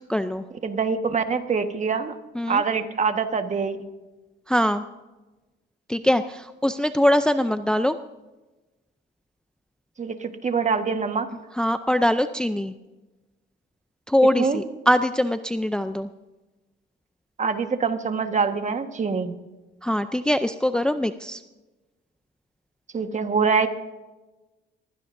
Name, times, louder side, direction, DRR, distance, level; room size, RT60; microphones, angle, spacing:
voice 1, 0.1-0.4 2.4-2.6 4.5-4.8 5.9-8.0 11.6-12.7 14.1-16.1 19.8-21.4, left 1 dB, 5° left, 10 dB, 0.5 m, -22 dB
voice 2, 0.6-2.2 2.5-3.9 10.0-11.3 14.4-14.6 17.4-19.3 22.9-23.7, right 5 dB, 35° right, 7 dB, 1.4 m, -24 dB
22.0 x 16.0 x 2.6 m, 1.1 s
cardioid pair, 90°, 20 cm